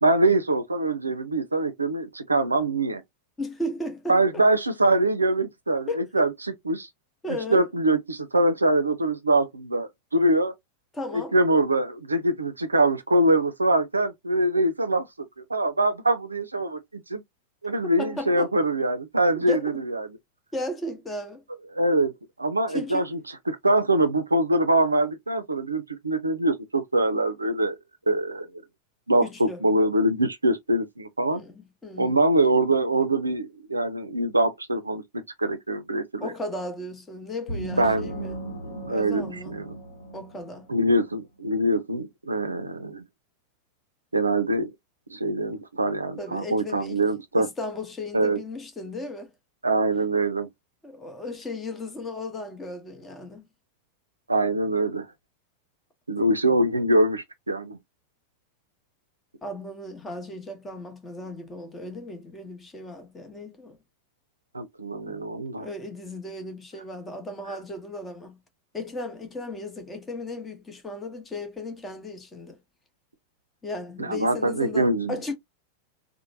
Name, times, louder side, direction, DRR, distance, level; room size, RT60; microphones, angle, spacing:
voice 1, 0.0-3.0 4.1-6.3 6.7-6.9 7.3-10.5 11.1-15.1 15.4-17.2 17.6-20.1 21.7-22.1 22.4-23.2 23.5-27.8 28.1-28.5 29.1-31.4 32.0-35.0 35.4-36.3 37.7-38.2 38.6-39.8 40.7-43.0 44.1-44.7 45.1-47.5 48.1-48.4 49.6-50.5 54.3-55.1 56.1-57.8 64.5-65.7 74.0-75.1, right 1 dB, 80° right, 0.4 m, -23 dB
voice 2, 3.4-4.2 5.9-6.0 7.2-7.7 10.9-11.3 18.0-18.5 19.4-19.8 20.5-21.4 22.7-23.1 29.2-29.6 31.3-32.1 36.2-38.4 38.9-39.6 40.1-40.7 46.2-47.0 47.4-49.3 50.8-53.4 56.1-56.2 59.4-63.8 65.1-65.2 65.6-68.4 68.7-72.6 73.6-75.3, left 2 dB, 15° left, 0.9 m, -35 dB
sound 1, 37.5-41.0, right 2 dB, 60° left, 0.9 m, -37 dB
3.0 x 2.0 x 2.6 m
figure-of-eight pair, 90°, 0 cm